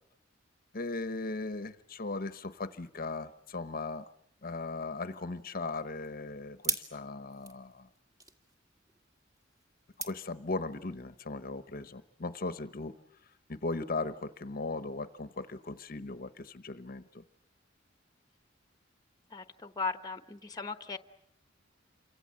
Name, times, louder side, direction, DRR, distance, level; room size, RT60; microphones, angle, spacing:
voice 1, 0.7-4.0 4.4-7.9 10.0-13.0 13.5-17.2, left 3 dB, 50° left, 12 dB, 1.0 m, -38 dB
sound 1, 5.3-10.9, right 2 dB, 20° right, 2.2 m, -42 dB
voice 2, 19.3-21.0, left 4 dB, 20° left, 10 dB, 1.1 m, -37 dB
28.5 x 25.0 x 7.6 m, 0.71 s
head